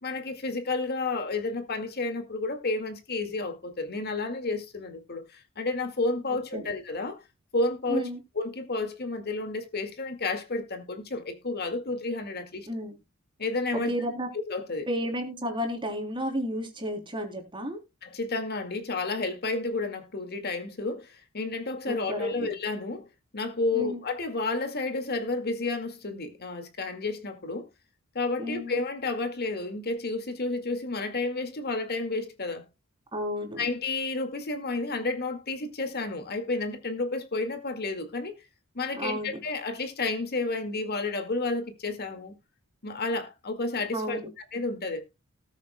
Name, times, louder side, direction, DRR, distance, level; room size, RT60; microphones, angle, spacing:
voice 1, 0.0-7.2 7.5-8.1 8.4-12.7 13.4-13.9 14.5-14.9 18.0-23.1 23.3-27.7 28.1-32.7 33.6-38.3 38.8-42.3 42.8-45.0, left 3 dB, 50° left, 1.9 m, -31 dB
voice 2, 7.9-8.2 12.7-13.0 13.8-14.3 14.9-17.8 21.9-22.5 23.7-24.0 28.4-28.8 33.1-33.6 38.9-39.4 43.9-44.3, equal, 25° right, 3.3 m, -32 dB
19.5 x 7.2 x 2.2 m
head